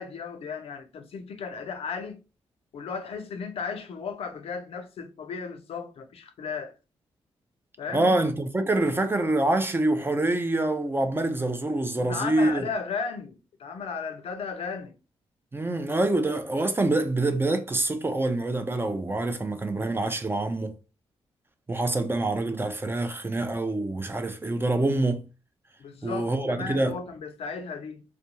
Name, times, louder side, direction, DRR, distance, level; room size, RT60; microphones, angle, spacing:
voice 1, 0.0-2.2 2.7-6.7 7.8-8.2 12.0-15.0 25.8-28.0, left 5 dB, 70° left, 0.5 m, -35 dB
voice 2, 7.9-12.6 15.5-20.7 21.7-25.3 26.0-27.0, right 2 dB, 20° right, 0.5 m, -26 dB
2.4 x 2.2 x 2.9 m
cardioid pair, 65°, 10 cm